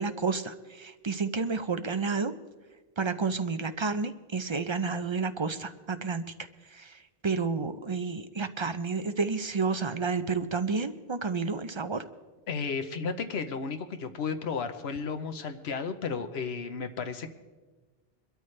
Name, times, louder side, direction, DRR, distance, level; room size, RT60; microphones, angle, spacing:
voice 1, 0.0-2.3 3.0-6.2 6.7-6.9 7.2-12.0, right 4 dB, 35° right, 10 dB, 0.5 m, -30 dB
voice 2, 12.5-17.3, left 5 dB, 85° left, 8 dB, 1.1 m, -33 dB
23.0 x 13.0 x 3.3 m, 1.3 s
omnidirectional pair, 1.0 m